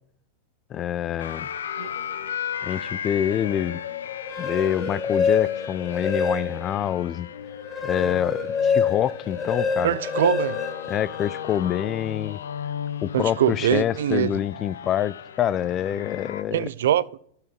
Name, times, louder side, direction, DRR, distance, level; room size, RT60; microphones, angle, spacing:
voice 1, 0.7-1.5 2.6-3.8 4.4-7.3 7.8-10.0 10.9-12.4 13.0-16.7, left 10 dB, 30° left, 0.4 m, -26 dB
sound 1, 1.2-16.4, left 9 dB, 90° left, 0.6 m, -36 dB
sound 2, 4.1-6.8 7.3-11.6, left 5 dB, 15° left, 0.9 m, -26 dB
voice 2, 9.8-10.6 13.1-14.4 16.5-17.2, right 11 dB, 80° right, 0.4 m, -23 dB
12.5 x 4.8 x 6.0 m
hypercardioid pair, 125°, 0 cm